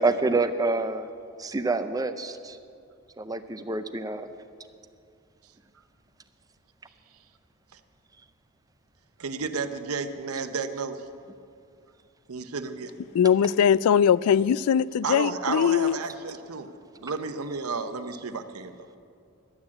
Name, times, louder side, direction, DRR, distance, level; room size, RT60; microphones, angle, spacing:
voice 1, 0.0-1.1 1.4-2.6 3.2-4.3, right 3 dB, 15° right, 0.5 m, -27 dB
voice 2, 9.2-11.0 12.3-12.9 15.0-16.7 17.0-19.0, right 4 dB, 90° right, 0.8 m, -32 dB
voice 3, 13.1-16.0, left 8 dB, 85° left, 0.3 m, -21 dB
12.0 x 8.5 x 8.6 m
head